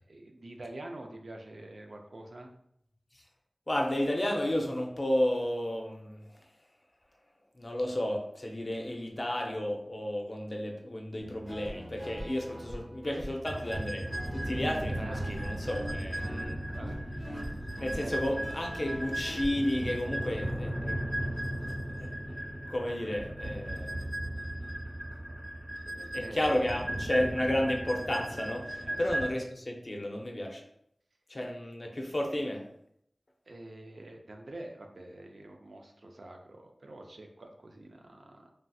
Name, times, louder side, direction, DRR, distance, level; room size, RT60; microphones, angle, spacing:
voice 1, 0.1-2.5 15.0-15.3 15.9-16.1 16.7-17.0 18.0-18.2 25.9-26.8 28.8-29.0 33.5-38.5, right 1 dB, 80° right, 2 dB, 0.4 m, -46 dB
voice 2, 3.7-6.2 7.5-14.1 14.3-16.6 17.8-21.0 21.7-22.1 22.7-24.4 26.1-30.6 31.3-32.6, left 1 dB, 40° left, 1 dB, 0.5 m, -32 dB
Guitar, 11.2-19.5, equal, 65° right, 1.1 m, -44 dB
sound 1, 13.5-29.3, right 1 dB, 10° right, 0.9 m, -36 dB
3.2 x 2.6 x 2.3 m, 0.74 s
wide cardioid pair, 65°, 0 cm